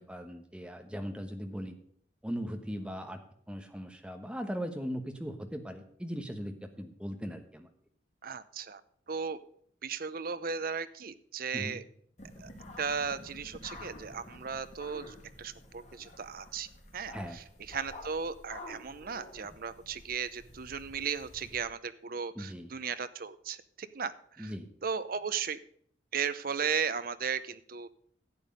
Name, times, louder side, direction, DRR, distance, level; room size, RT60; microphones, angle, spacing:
voice 1, 0.0-1.8 2.2-3.2 3.5-7.7 11.5-11.8 17.1-17.4 22.3-22.7 24.4-24.7, equal, 5° right, 5 dB, 1.2 m, -39 dB
voice 2, 8.2-8.8 9.1-9.4 9.8-11.8 12.4-12.5 12.8-16.7 16.9-24.1 24.4-24.5 24.8-25.6 26.1-27.9, right 6 dB, 50° right, 13 dB, 0.7 m, -36 dB
sound 1, 12.2-21.6, left 1 dB, 40° left, 2.2 m, -50 dB
11.5 x 8.2 x 5.2 m, 0.63 s
head